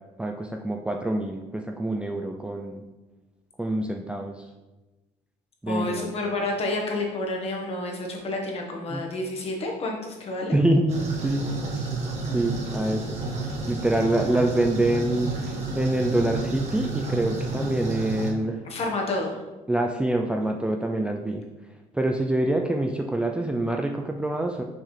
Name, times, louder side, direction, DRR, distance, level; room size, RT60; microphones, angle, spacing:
voice 1, 0.2-2.8 3.6-4.5 5.6-6.1 8.9-9.0 10.5-11.6 12.3-13.2 13.7-18.7 19.7-21.5 21.9-24.6, right 1 dB, 5° right, 2 dB, 0.4 m, -26 dB
voice 2, 5.7-10.6 18.6-19.4, left 2 dB, 40° left, 0 dB, 1.5 m, -29 dB
sound 1, 10.9-18.3, right 3 dB, 45° right, 1.6 m, -31 dB
6.2 x 4.6 x 3.3 m, 1.1 s
supercardioid pair, 95°, 15 cm